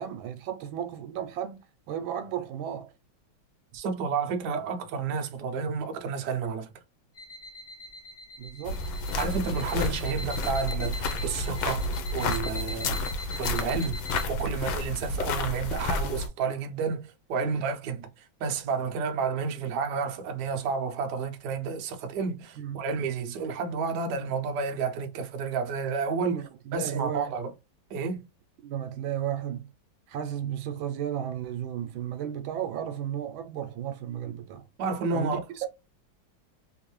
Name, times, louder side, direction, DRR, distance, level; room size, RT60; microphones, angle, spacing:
voice 1, 0.0-1.6 1.9-2.9 8.4-8.8 17.4-17.5 22.6-22.8 26.1-27.4 28.6-29.7 30.1-34.6 35.1-35.7, right 10 dB, 85° right, 1.4 m, -34 dB
voice 2, 3.7-6.7 9.2-13.0 13.4-14.0 14.3-18.1 18.4-26.4 26.7-27.5 27.9-28.2 34.8-35.4, right 5 dB, 65° right, 1.2 m, -30 dB
sound 1, 7.2-14.2, left 1 dB, 45° left, 0.9 m, -42 dB
sound 2, 8.6-16.3, left 2 dB, 80° left, 1.4 m, -31 dB
3.5 x 2.6 x 3.0 m
omnidirectional pair, 2.2 m